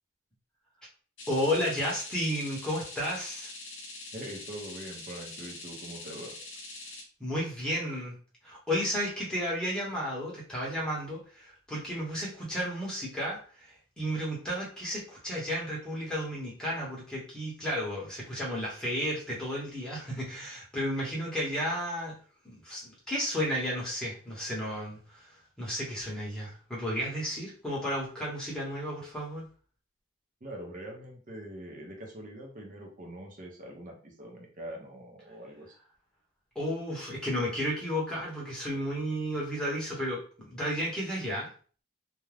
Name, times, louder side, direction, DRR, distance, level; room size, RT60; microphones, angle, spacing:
sound 1, 1.2-7.0, left 2 dB, 60° left, 0.7 m, -44 dB
voice 1, 1.3-3.5 7.2-8.2 8.4-22.2 22.4-29.5 36.5-41.5, equal, 5° left, -5 dB, 0.9 m, -33 dB
voice 2, 4.1-6.3 30.4-35.7, right 1 dB, 40° right, 1 dB, 0.6 m, -43 dB
2.3 x 2.1 x 3.2 m, 0.41 s
head